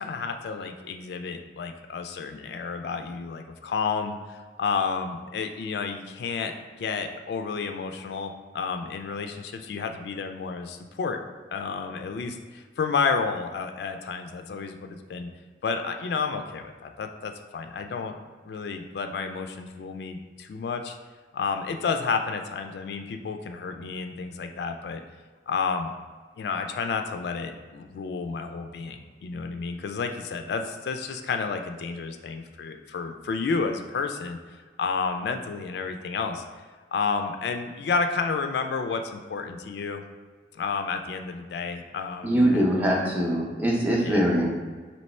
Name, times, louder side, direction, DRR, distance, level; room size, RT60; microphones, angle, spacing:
voice 1, 0.0-11.2 11.5-15.3 15.6-18.2 18.5-21.0 21.3-25.0 25.5-25.9 26.4-34.4 34.8-36.4 36.9-40.0 40.5-42.8 44.0-44.4, left 5 dB, 70° left, 6 dB, 0.3 m, -31 dB
voice 2, 42.2-44.5, equal, 10° right, -2 dB, 0.5 m, -22 dB
3.2 x 2.9 x 4.2 m, 1.5 s
head